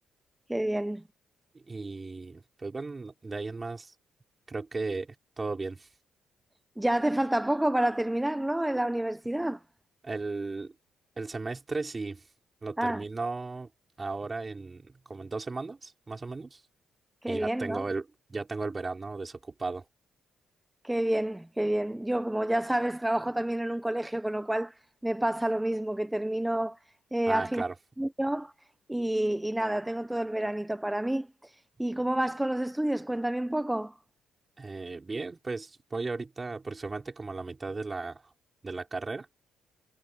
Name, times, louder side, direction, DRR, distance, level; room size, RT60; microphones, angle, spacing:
voice 1, 0.5-1.0 6.8-9.6 12.8-13.0 17.2-17.8 20.8-27.6 28.0-28.5 28.9-34.0, right 1 dB, 5° right, 0.8 m, -29 dB
voice 2, 1.5-3.9 4.5-5.9 10.0-10.7 11.2-12.2 12.6-13.7 14.0-16.6 17.3-18.0 18.3-19.8 27.3-27.7 34.6-38.2 38.6-39.3, right 3 dB, 25° right, 5.7 m, -35 dB
cardioid pair, 90°, 0 cm